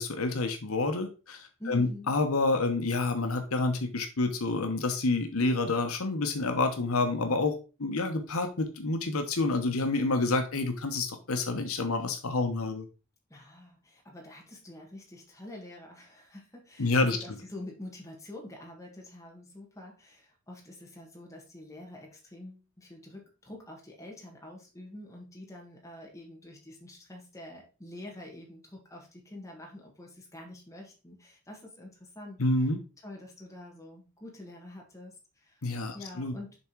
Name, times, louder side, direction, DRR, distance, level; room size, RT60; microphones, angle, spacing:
voice 1, 0.0-7.5 7.8-12.8 16.8-17.2 32.4-32.8 35.6-36.3, left 3 dB, 75° left, 6 dB, 1.0 m, -28 dB
voice 2, 1.6-2.1 13.3-32.4 33.0-35.6 35.9-36.6, left 1 dB, 15° left, -1 dB, 1.7 m, -46 dB
7.1 x 3.6 x 4.5 m, 0.32 s
head